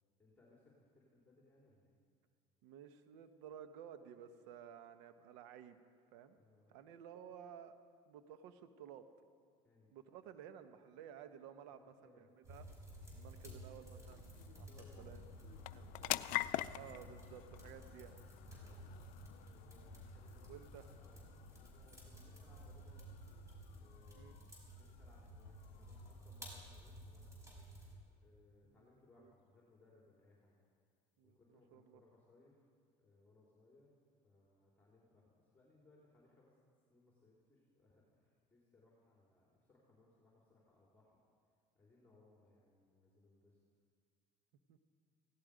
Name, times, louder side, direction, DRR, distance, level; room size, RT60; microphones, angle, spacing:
voice 1, 0.2-2.0 6.3-6.8 9.6-10.0 11.7-12.3 13.3-13.7 14.7-16.5 18.6-18.9 19.5-20.6 20.9-23.2 23.8-24.4 24.7-27.4 28.1-30.6 31.2-32.7 33.0-34.0 34.2-36.5 36.9-41.2 41.7-43.6, left 2 dB, 10° left, -5 dB, 4.0 m, -68 dB
voice 2, 2.6-5.8 6.1-6.4 6.7-7.7 8.1-9.1 9.9-12.6 13.1-14.7 15.0-15.2 15.7-16.2 16.7-18.2 20.5-20.9 24.1-24.4 28.6-28.7 29.2-29.3 31.2-32.0 44.7-44.8, right 9 dB, 85° right, 10 dB, 1.1 m, -55 dB
sound 1, 12.4-28.0, equal, 20° right, 5.4 m, -54 dB
sound 2, 12.8-27.5, left 16 dB, 70° left, 0.4 m, -48 dB
17.0 x 16.5 x 5.1 m, 2.1 s
supercardioid pair, 90°, 15 cm